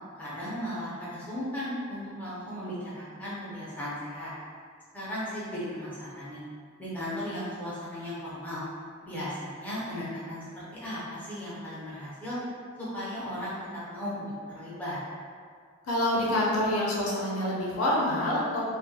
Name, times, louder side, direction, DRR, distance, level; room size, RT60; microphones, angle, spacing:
voice 1, 0.2-4.3 4.9-6.4 6.8-8.6 9.0-12.4 12.9-13.6 13.9-15.0, equal, 5° left, -10 dB, 0.5 m, -36 dB
voice 2, 15.9-18.6, left 1 dB, 85° left, -5 dB, 0.5 m, -26 dB
2.2 x 2.2 x 2.7 m, 2.1 s
head